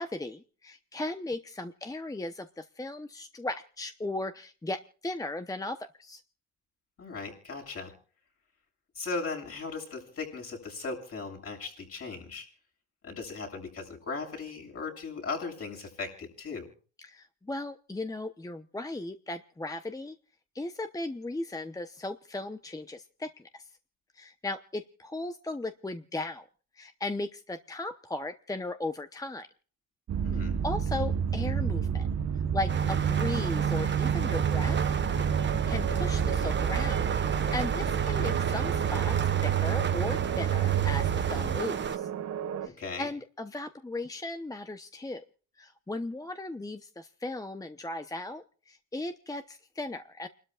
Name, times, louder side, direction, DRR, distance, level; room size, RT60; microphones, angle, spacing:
voice 1, 0.0-6.2 17.0-20.2 20.5-23.7 24.1-26.4 26.7-29.5 30.6-32.1 32.5-34.8 35.4-42.1 42.6-45.2 45.6-50.3, left 2 dB, 10° left, 9 dB, 0.9 m, -37 dB
voice 2, 7.0-8.0 8.9-12.5 13.0-16.7 30.2-30.5 42.6-43.1, left 4 dB, 50° left, 1 dB, 7.5 m, -37 dB
sound 1, 30.1-41.6, right 8 dB, 55° right, 1.1 m, -29 dB
sound 2, 32.7-42.0, right 6 dB, 40° right, 1.3 m, -35 dB
sound 3, 34.2-42.7, right 9 dB, 75° right, 1.6 m, -37 dB
29.5 x 12.5 x 2.4 m, 0.40 s
cardioid pair, 90°, 30 cm